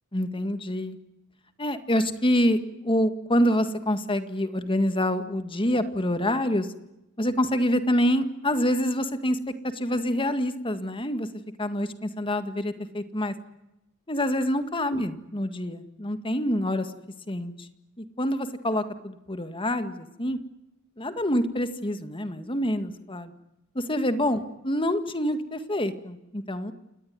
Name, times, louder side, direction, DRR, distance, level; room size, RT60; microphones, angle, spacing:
voice 1, 0.1-1.0 1.6-2.6 2.8-6.7 7.2-9.4 9.7-11.3 11.6-13.3 14.1-16.9 17.3-17.7 18.0-20.4 21.0-23.3 23.8-26.7, equal, 25° left, 9 dB, 1.8 m, -26 dB
29.0 x 19.0 x 9.5 m, 0.95 s
head